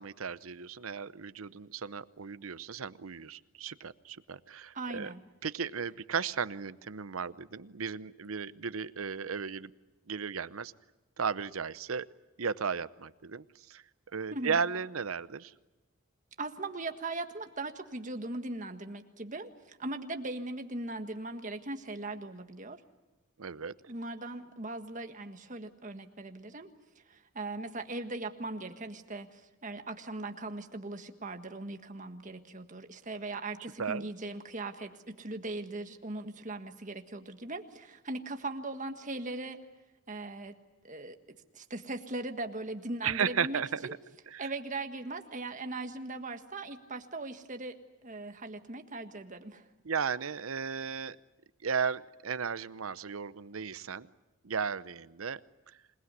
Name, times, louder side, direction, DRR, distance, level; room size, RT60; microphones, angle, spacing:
voice 1, 0.0-5.1 5.4-9.7 10.1-10.7 11.2-12.1 12.4-13.8 14.1-15.5 23.4-23.7 33.8-34.1 43.0-43.9 44.3-44.5 49.8-51.2 51.6-54.1 54.4-55.4 55.7-55.8, right 6 dB, 85° right, 15 dB, 0.8 m, -35 dB
voice 2, 4.7-5.2 14.3-14.6 16.4-22.8 23.9-26.7 27.1-39.6 40.1-40.5 40.8-41.2 41.5-43.9 44.4-49.6, right 2 dB, 40° right, 7 dB, 1.6 m, -39 dB
27.0 x 19.5 x 9.7 m, 1.1 s
head